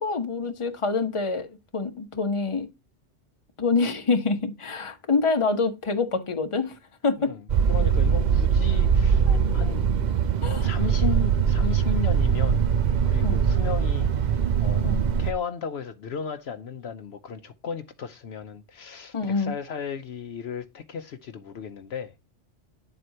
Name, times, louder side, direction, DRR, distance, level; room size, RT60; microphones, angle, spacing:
voice 1, 0.0-2.7 3.6-6.8 7.0-7.3 9.3-9.4 10.4-10.7 13.2-13.4 14.8-15.0 19.1-19.5, left 4 dB, 30° left, 1.0 m, -26 dB
sound 1, 7.5-15.3, right 7 dB, 50° right, 0.6 m, -22 dB
voice 2, 7.7-9.2 9.5-9.8 10.5-12.6 13.1-14.9 15.2-22.1, left 7 dB, 65° left, 0.9 m, -35 dB
9.9 x 7.7 x 2.8 m
omnidirectional pair, 1.2 m